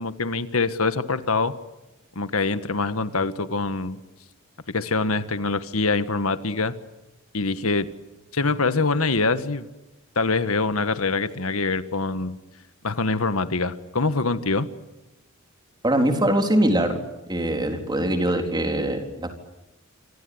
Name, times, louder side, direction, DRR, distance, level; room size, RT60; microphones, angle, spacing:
voice 1, 0.0-1.5 2.1-4.0 4.7-6.7 7.3-7.9 8.3-9.7 10.1-12.4 12.8-14.7, left 3 dB, 80° left, 11 dB, 1.6 m, -24 dB
voice 2, 15.8-17.0 17.3-19.3, right 1 dB, 20° right, 4 dB, 4.0 m, -22 dB
27.5 x 26.0 x 8.0 m, 1.0 s
head